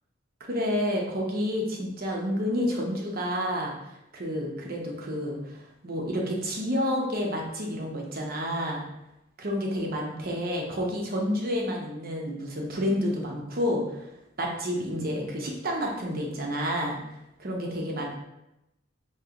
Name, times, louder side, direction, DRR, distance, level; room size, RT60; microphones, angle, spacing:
voice 1, 0.5-3.7 4.1-8.8 9.4-14.0 14.4-17.0 17.4-18.1, equal, 50° right, 0 dB, 0.9 m, -29 dB
5.0 x 3.0 x 2.9 m, 0.90 s
head